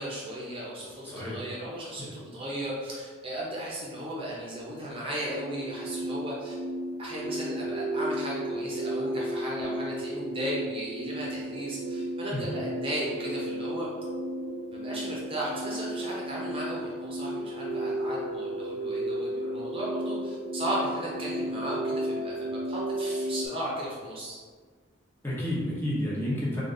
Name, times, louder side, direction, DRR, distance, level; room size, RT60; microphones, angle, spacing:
voice 1, 0.0-6.5 7.0-13.9 14.7-24.4, right 1 dB, 25° right, -5 dB, 0.7 m, -35 dB
voice 2, 1.0-1.4 2.0-2.1 12.3-12.4 25.2-26.6, left 1 dB, 10° left, -7 dB, 0.8 m, -30 dB
sound 1, 5.2-23.5, right 1 dB, 65° right, 0.4 m, -33 dB
3.7 x 2.5 x 3.8 m, 1.5 s
head